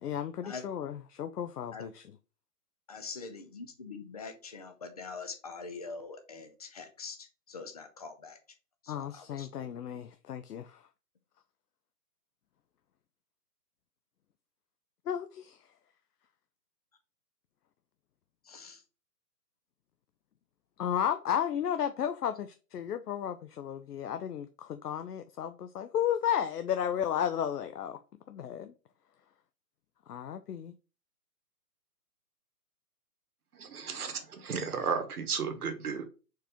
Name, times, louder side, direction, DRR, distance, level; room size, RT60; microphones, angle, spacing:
voice 1, 0.0-2.1 8.9-10.8 15.1-15.6 20.8-28.0 28.3-28.7 30.1-30.7, left 9 dB, 75° left, 0.6 m, -33 dB
voice 2, 2.9-8.4 8.8-9.7 18.5-18.8, left 4 dB, 25° left, 0.4 m, -44 dB
voice 3, 33.5-36.0, right 6 dB, 70° right, 1.2 m, -34 dB
4.5 x 3.1 x 3.5 m
figure-of-eight pair, 140°, 47 cm